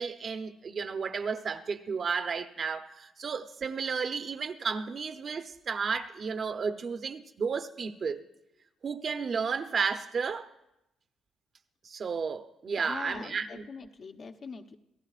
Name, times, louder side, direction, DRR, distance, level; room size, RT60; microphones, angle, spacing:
voice 1, 0.0-8.2 8.8-10.5 11.8-13.7, right 5 dB, 45° right, 0.8 m, -33 dB
voice 2, 12.8-14.8, left 5 dB, 50° left, 1.0 m, -43 dB
27.0 x 17.0 x 2.5 m
cardioid pair, 90°, 0 cm